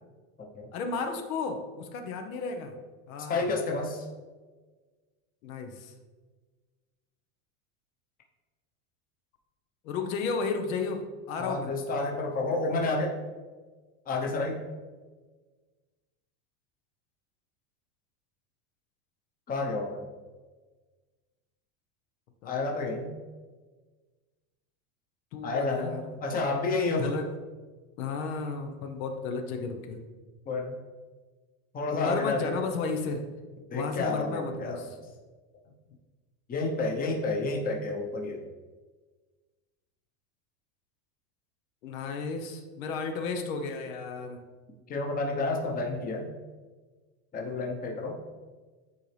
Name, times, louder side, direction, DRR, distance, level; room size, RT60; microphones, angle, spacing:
voice 1, 0.7-2.8 3.1-3.5 5.4-5.9 9.8-11.7 22.4-22.7 25.3-26.4 27.0-27.3 28.0-30.0 31.9-33.2 33.7-34.9 41.8-44.4, left 4 dB, 75° left, 5 dB, 1.0 m, -33 dB
voice 2, 3.3-4.1 11.4-13.1 14.1-14.6 19.5-20.0 22.4-23.1 25.4-27.1 30.5-30.7 31.7-32.6 33.7-34.9 36.5-38.4 44.9-46.3 47.3-48.2, left 3 dB, 20° left, 0 dB, 0.9 m, -30 dB
9.8 x 4.0 x 3.3 m, 1.4 s
supercardioid pair, 135°, 41 cm